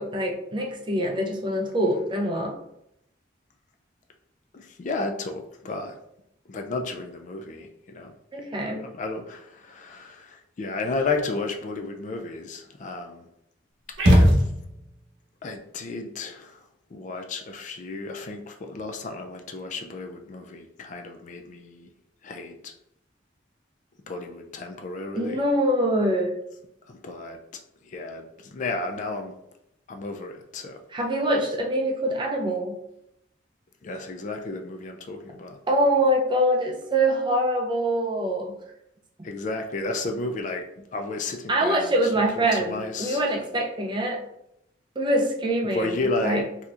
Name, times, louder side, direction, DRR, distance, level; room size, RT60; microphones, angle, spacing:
voice 1, 0.0-2.6 8.3-8.8 25.1-26.3 30.9-32.8 35.7-38.6 41.5-44.2 45.0-46.5, right 1 dB, 25° right, 0 dB, 0.5 m, -24 dB
voice 2, 4.5-6.0 6.5-8.1 8.5-13.3 14.1-14.4 15.4-16.6 16.9-21.9 22.2-22.7 24.1-25.4 26.9-27.4 27.8-29.3 29.9-30.8 33.8-35.6 39.2-42.0 42.4-43.2 45.6-46.4, left 3 dB, 40° left, 4 dB, 0.3 m, -33 dB
sound 1, 14.0-15.0, equal, 85° right, 0.9 m, -18 dB
4.1 x 2.7 x 2.4 m, 0.79 s
head